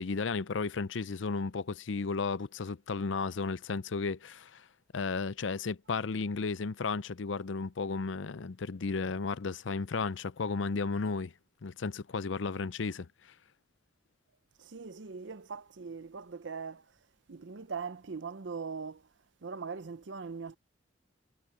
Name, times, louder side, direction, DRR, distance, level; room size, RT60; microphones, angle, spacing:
voice 1, 0.0-4.7 4.9-11.3 11.6-13.1, left 4 dB, 75° left, 0.6 m, -34 dB
voice 2, 14.6-16.8 17.3-19.0 19.4-20.6, right 5 dB, 70° right, 0.7 m, -41 dB
head